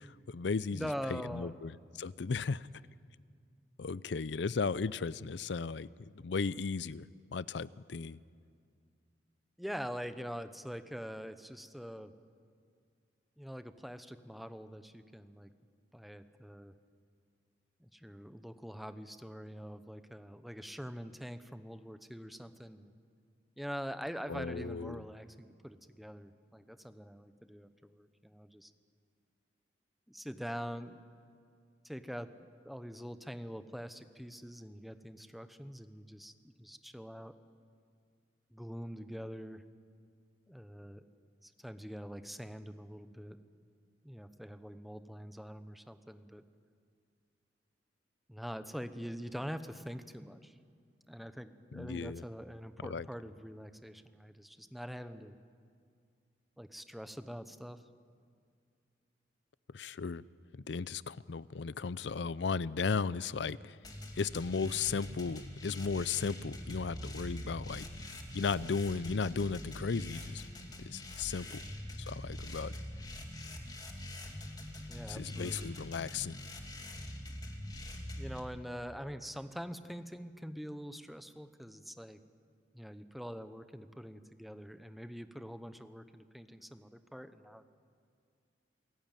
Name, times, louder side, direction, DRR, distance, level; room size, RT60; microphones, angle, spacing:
voice 1, 0.0-2.7 3.8-7.1 7.3-8.2 24.3-25.0 51.7-52.2 52.8-53.1 59.7-60.2 60.7-63.8 64.2-67.8 68.3-70.4 70.8-71.6 72.0-72.8 75.1-76.4, left 5 dB, 75° left, 19 dB, 0.5 m, -35 dB
voice 2, 0.7-1.5 9.6-12.1 13.4-15.5 15.9-16.7 17.8-22.9 23.6-28.7 30.1-31.0 31.8-32.3 32.6-37.3 38.5-39.6 40.5-41.0 41.4-43.4 44.0-46.4 48.3-50.6 51.1-55.4 56.6-57.8 71.4-71.7 74.9-75.7 78.2-82.2 82.7-87.6, equal, ahead, 10 dB, 0.9 m, -44 dB
sound 1, 63.8-78.4, left 1 dB, 25° left, 2.5 m, -44 dB
27.5 x 17.5 x 9.2 m, 2.2 s
head